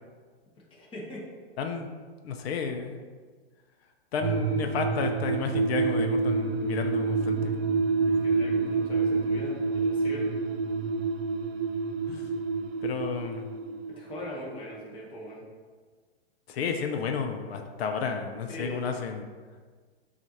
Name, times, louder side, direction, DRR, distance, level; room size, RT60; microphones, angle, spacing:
voice 1, 0.7-1.2 8.1-10.3 14.0-15.5 18.5-19.0, left 1 dB, 15° left, -4 dB, 0.9 m, -41 dB
voice 2, 1.6-1.9 2.2-3.0 4.1-7.6 12.1-12.3 12.8-13.5 16.5-19.2, left 5 dB, 75° left, 4 dB, 0.6 m, -32 dB
sound 1, 4.2-15.0 15.3-15.4, right 4 dB, 70° right, 0.5 m, -28 dB
7.2 x 2.5 x 2.8 m, 1.5 s
hypercardioid pair, 140°, 31 cm